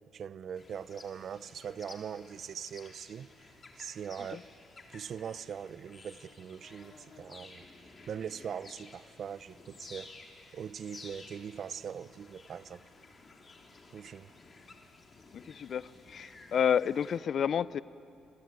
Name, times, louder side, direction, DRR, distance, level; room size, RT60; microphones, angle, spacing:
voice 1, 0.1-3.3 3.8-4.4 4.9-7.6 8.1-10.1 10.5-12.8 13.9-14.3, right 8 dB, 60° right, 0.7 m, -41 dB
sound 1, 0.6-17.2, left 3 dB, 35° left, 3.7 m, -54 dB
voice 2, 15.3-17.8, left 8 dB, 60° left, 0.5 m, -30 dB
26.5 x 23.0 x 9.5 m
cardioid pair, 90°, 0 cm